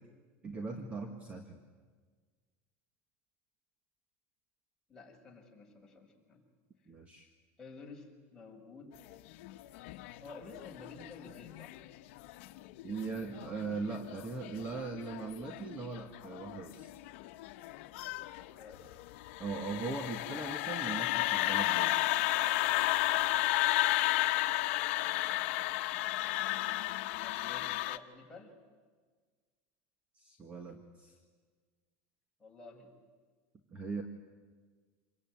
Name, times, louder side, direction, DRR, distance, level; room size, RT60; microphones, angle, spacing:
voice 1, 0.4-1.6 6.9-7.3 12.8-16.9 19.4-22.1 30.2-31.1 33.7-34.0, right 4 dB, 20° right, 5 dB, 1.8 m, -40 dB
voice 2, 4.9-6.4 7.6-9.2 10.0-11.8 18.4-19.0 27.2-28.5 32.4-33.0, left 3 dB, 10° left, -3 dB, 5.8 m, -52 dB
sound 1, 9.1-28.0, left 19 dB, 70° left, 1.1 m, -33 dB
27.0 x 23.0 x 9.5 m, 1.5 s
supercardioid pair, 155°, 7 cm